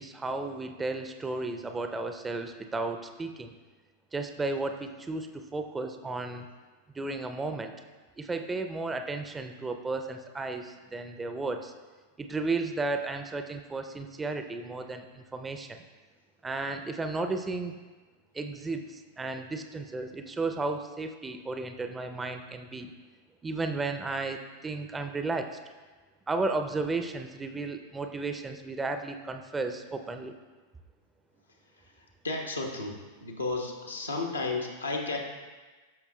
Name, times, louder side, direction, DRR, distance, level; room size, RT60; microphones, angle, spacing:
voice 1, 0.0-3.5 4.1-6.5 6.9-7.7 8.2-11.7 12.2-15.8 16.4-17.7 18.3-22.9 23.4-25.6 26.3-30.4, right 3 dB, 15° right, 6 dB, 0.5 m, -34 dB
voice 2, 32.2-35.2, left 3 dB, 80° left, 1 dB, 1.1 m, -33 dB
13.5 x 5.9 x 2.2 m, 1.3 s
figure-of-eight pair, 90°, 0 cm